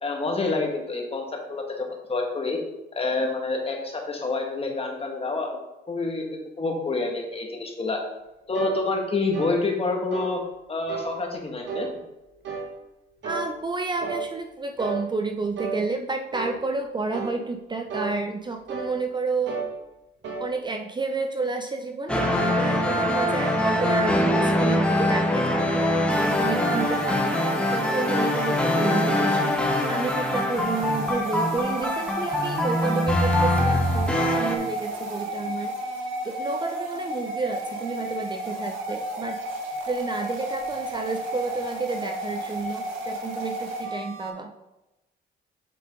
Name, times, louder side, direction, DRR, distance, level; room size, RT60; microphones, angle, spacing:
voice 1, 0.0-2.6 3.0-8.0 8.5-10.4 10.7-11.9, left 3 dB, 30° left, 2 dB, 1.6 m, -28 dB
sound 1, 8.5-8.8 9.3-9.6 10.1-10.4 10.9-11.1 11.7-11.9 12.4-12.7 13.2-13.5 14.0-14.2 14.8-15.0 15.6-15.8 16.3-16.6 17.1-17.4 17.9-18.1 18.7-18.9 19.5-19.7 20.2-20.5, right 5 dB, 65° right, 1.5 m, -32 dB
voice 2, 13.2-19.7 20.4-26.0 26.4-35.7 36.2-39.4 39.8-44.5, right 3 dB, 20° right, 4 dB, 0.5 m, -30 dB
sound 2, 22.1-34.5, left 1 dB, 5° left, 1.3 m, -23 dB
sound 3, 26.1-44.3, right 1 dB, 85° right, 1.5 m, -33 dB
7.6 x 5.0 x 3.7 m, 0.97 s
cardioid pair, 90°, 20 cm